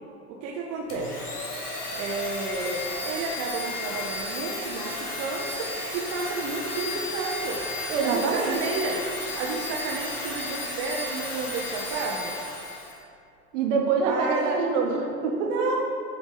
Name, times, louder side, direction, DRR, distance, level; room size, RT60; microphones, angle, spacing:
voice 1, 0.3-1.3 2.0-7.6 8.0-12.3 14.0-14.5 15.4-15.8, right 3 dB, 35° right, -1 dB, 0.7 m, -31 dB
Domestic sounds home sounds, 0.9-13.0, left 2 dB, 85° left, 1.0 m, -33 dB
voice 2, 7.9-8.6 13.5-15.7, right 5 dB, 55° right, 1 dB, 1.1 m, -25 dB
8.0 x 3.4 x 4.0 m, 2.5 s
figure-of-eight pair, 80°, 44 cm